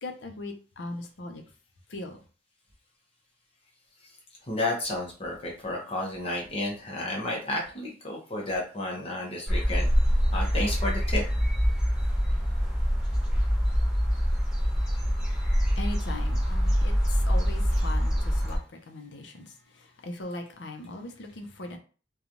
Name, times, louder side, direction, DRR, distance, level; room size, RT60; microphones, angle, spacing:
voice 1, 0.0-1.4 1.9-2.2 15.8-18.6 18.9-19.4 20.0-21.8, left 2 dB, 70° left, 0.6 m, -39 dB
voice 2, 4.5-9.9 10.3-11.2, left 1 dB, 30° left, 0.8 m, -31 dB
sound 1, 9.5-18.6, equal, 5° right, 0.8 m, -25 dB
3.0 x 2.3 x 2.5 m
head